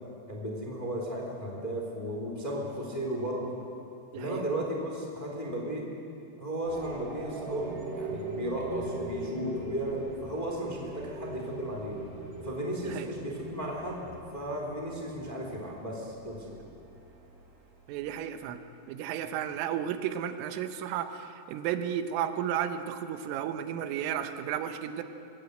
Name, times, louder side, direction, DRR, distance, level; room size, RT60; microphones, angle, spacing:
voice 1, 0.3-3.6 4.1-5.9 6.4-12.0 12.4-16.5, right 1 dB, 15° left, -1 dB, 1.7 m, -35 dB
sound 1, 6.6-18.3, right 2 dB, 60° right, 4.6 m, -41 dB
voice 2, 17.9-18.6 18.9-25.0, right 10 dB, 85° right, 8 dB, 3.6 m, -33 dB
23.5 x 16.5 x 7.9 m, 2.6 s
omnidirectional pair, 5.7 m